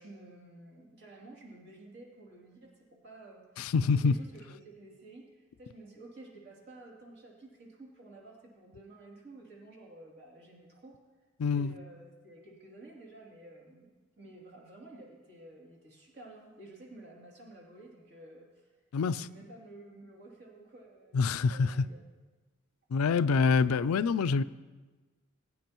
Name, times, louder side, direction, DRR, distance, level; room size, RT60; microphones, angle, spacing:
voice 1, 0.0-2.7 3.0-3.4 3.8-11.0 11.5-18.5 19.2-22.0, right 2 dB, 50° right, 2.8 m, -52 dB
voice 2, 3.6-4.1 11.4-11.7 18.9-19.3 21.1-21.9 22.9-24.4, left 5 dB, 85° left, 0.4 m, -26 dB
21.0 x 9.6 x 3.0 m
head